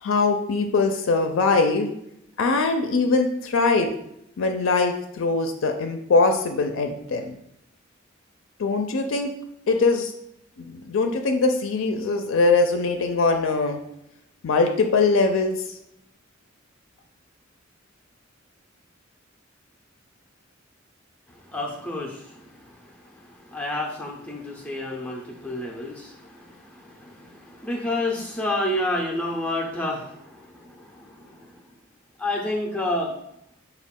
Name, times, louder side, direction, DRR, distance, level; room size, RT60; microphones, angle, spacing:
voice 1, 0.0-1.9 2.4-3.9 4.4-7.4 8.6-9.3 9.7-10.1 10.6-13.8 14.4-15.5, left 3 dB, 70° left, 5 dB, 0.4 m, -22 dB
voice 2, 21.5-22.4 23.5-31.4 32.2-33.1, left 1 dB, 10° left, -2 dB, 0.5 m, -29 dB
4.9 x 2.3 x 3.6 m, 0.78 s
head